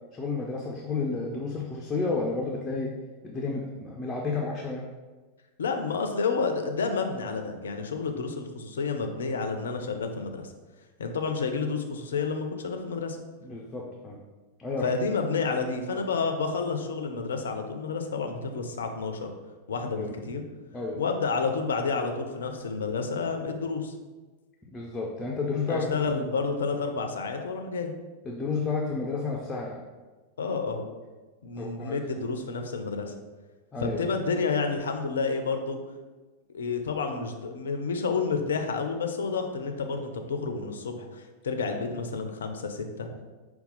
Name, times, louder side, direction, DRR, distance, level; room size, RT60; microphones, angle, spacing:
voice 1, 0.1-3.0 3.2-4.8 13.4-14.2 14.6-14.9 19.8-20.1 20.7-21.0 24.7-26.1 28.2-29.8 31.6-32.0 33.7-34.1, left 4 dB, 20° left, -2 dB, 0.6 m, -31 dB
voice 2, 5.6-10.5 11.0-13.2 14.8-19.3 19.7-20.4 21.0-23.9 25.7-27.9 30.4-30.9 31.4-33.1 33.8-35.8 36.5-43.1, left 4 dB, 65° left, 5 dB, 0.5 m, -30 dB
5.3 x 2.3 x 3.9 m, 1.3 s
figure-of-eight pair, 90°, 0 cm